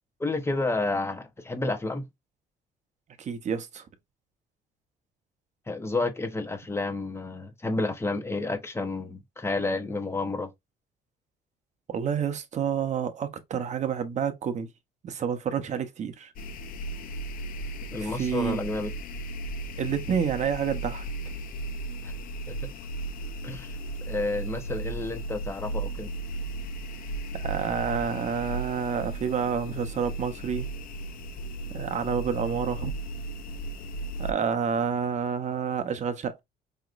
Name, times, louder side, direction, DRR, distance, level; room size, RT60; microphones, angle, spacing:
voice 1, 0.2-2.1 5.7-10.5 17.9-18.9 22.0-22.1 22.5-22.7 23.4-23.8 24.1-26.1, left 2 dB, 15° left, 1.0 m, -30 dB
voice 2, 3.2-3.9 11.9-14.7 15.0-16.3 18.0-18.6 19.8-21.1 27.3-30.7 31.7-32.9 34.2-36.4, right 7 dB, 45° right, 0.8 m, -29 dB
sound 1, 16.4-34.3, right 2 dB, 60° left, 0.6 m, -35 dB
5.0 x 2.9 x 2.5 m
cardioid pair, 110°, 17 cm